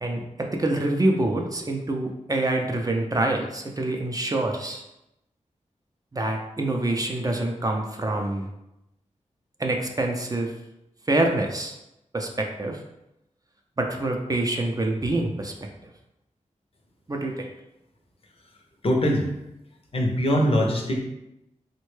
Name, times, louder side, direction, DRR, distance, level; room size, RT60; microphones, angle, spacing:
voice 1, 0.0-4.8 6.1-8.5 9.6-10.5 11.1-11.8 12.1-12.8 13.8-15.5 17.1-17.5, right 2 dB, 30° right, 2 dB, 0.4 m, -26 dB
voice 2, 18.8-19.3 19.9-21.0, equal, 50° left, 2 dB, 0.5 m, -22 dB
3.5 x 2.1 x 3.1 m, 0.87 s
wide cardioid pair, 90°, 13 cm